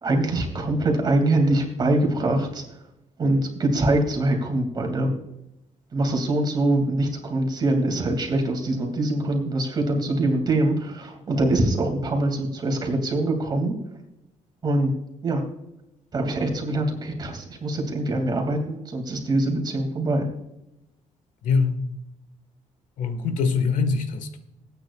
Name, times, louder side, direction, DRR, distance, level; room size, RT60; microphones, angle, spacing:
voice 1, 0.0-2.6 3.2-5.1 5.9-13.7 14.6-14.9 15.2-15.4 16.1-20.3, right 2 dB, 35° right, 3 dB, 2.6 m, -23 dB
voice 2, 21.4-21.8 23.0-24.4, left 5 dB, 80° left, 9 dB, 1.6 m, -23 dB
21.5 x 9.2 x 2.4 m, 0.88 s
cardioid pair, 140°, 13 cm